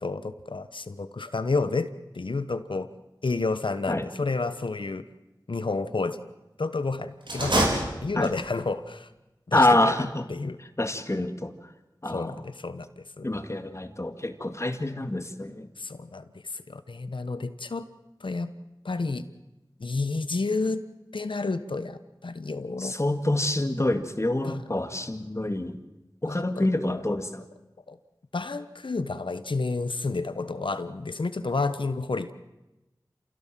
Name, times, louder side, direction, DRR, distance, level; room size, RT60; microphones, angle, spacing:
voice 1, 0.0-1.9 2.1-2.9 3.2-5.1 5.5-6.2 6.6-7.7 8.0-9.1 9.5-10.6 12.1-13.3 15.8-17.9 18.2-18.5 18.8-19.2 19.8-20.8 21.1-23.0 24.4-24.6 26.2-27.0 27.9-28.0 28.3-32.3, left 3 dB, 80° left, 11 dB, 1.2 m, -30 dB
sound 1, 7.2-8.6, right 1 dB, 75° right, 4.7 m, -26 dB
voice 2, 9.5-10.2 10.8-11.5 12.0-12.3 13.2-15.7 22.8-25.8 26.2-27.4, left 1 dB, 35° left, 7 dB, 2.1 m, -26 dB
28.0 x 16.5 x 7.7 m, 1.0 s
wide cardioid pair, 40°, 8 cm